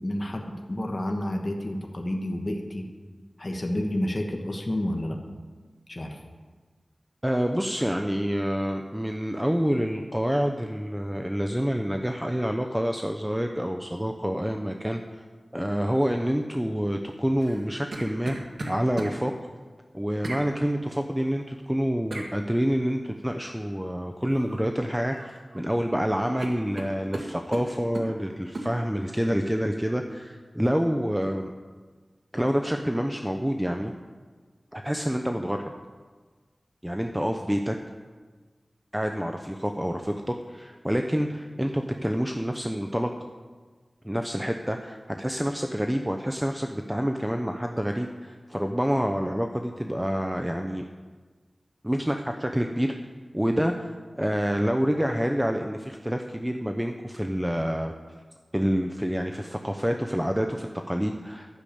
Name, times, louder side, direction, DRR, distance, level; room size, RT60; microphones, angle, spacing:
voice 1, 0.0-2.9 3.4-5.2 5.9-6.2, left 1 dB, 40° left, 2 dB, 1.4 m, -30 dB
voice 2, 7.2-15.2 15.5-18.4 18.7-19.3 19.9-31.5 32.3-33.9 34.7-35.7 36.8-37.8 38.9-43.1 44.0-50.8 51.8-52.9 53.3-53.9 54.1-57.9 58.5-61.6, equal, 10° right, 4 dB, 0.7 m, -27 dB
sound 1, 17.4-19.2 20.2-20.5 22.1-22.3 24.3-24.6 24.9-25.6 25.9-26.0 26.4-28.1 28.5-28.7, right 2 dB, 65° right, 1.6 m, -36 dB
12.0 x 7.0 x 8.6 m, 1.4 s
wide cardioid pair, 60°, 0 cm